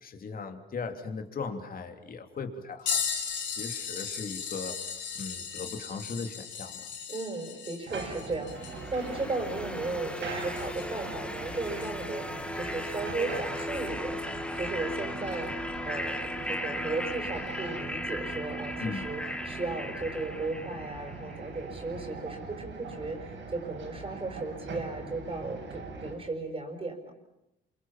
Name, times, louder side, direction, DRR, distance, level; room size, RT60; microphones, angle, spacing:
voice 1, 0.0-3.0 3.3-4.8 5.1-6.9 18.8-19.0, left 4 dB, 45° left, 5 dB, 3.1 m, -38 dB
sound 1, 2.9-11.1 11.8-11.9 14.2-14.3 15.3-15.5 16.5-16.6, left 6 dB, 65° left, 4.7 m, -37 dB
voice 2, 7.1-15.6 15.8-27.1, right 3 dB, 30° right, 2 dB, 6.0 m, -36 dB
sound 2, 7.9-26.1, right 4 dB, 70° right, 7.8 m, -42 dB
sound 3, 8.5-21.5, left 1 dB, 5° left, 1.7 m, -37 dB
28.0 x 24.5 x 7.4 m, 0.85 s
cardioid pair, 90°, 20 cm